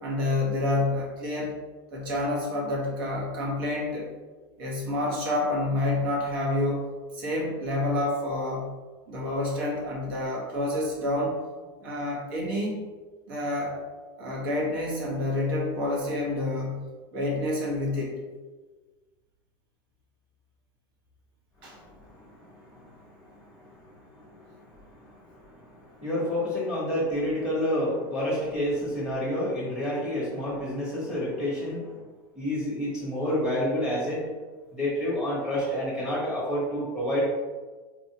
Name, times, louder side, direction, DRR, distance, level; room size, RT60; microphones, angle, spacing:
voice 1, 0.0-1.5 1.9-4.1 4.6-6.9 7.1-8.7 9.1-11.4 11.8-12.8 13.3-13.8 14.2-18.2 21.6-21.8, left 1 dB, 70° right, -3 dB, 1.2 m, -28 dB
voice 2, 21.6-31.9 32.3-34.3 34.7-37.3, equal, 10° right, -8 dB, 1.1 m, -30 dB
4.4 x 2.4 x 2.8 m, 1.3 s
supercardioid pair, 170°, 12 cm